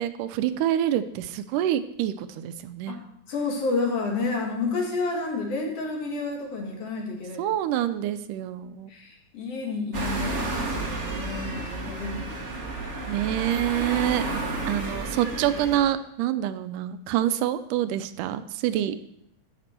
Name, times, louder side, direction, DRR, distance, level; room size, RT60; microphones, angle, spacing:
voice 1, 0.0-3.0 7.4-8.9 13.1-14.2 14.7-19.0, right 11 dB, 85° right, 12 dB, 2.1 m, -26 dB
voice 2, 3.3-7.4 8.9-13.3, left 3 dB, 55° left, 0 dB, 2.5 m, -30 dB
sound 1, 9.9-15.8, right 2 dB, 60° right, 0.7 m, -31 dB
14.0 x 6.1 x 4.3 m, 0.75 s
omnidirectional pair, 3.6 m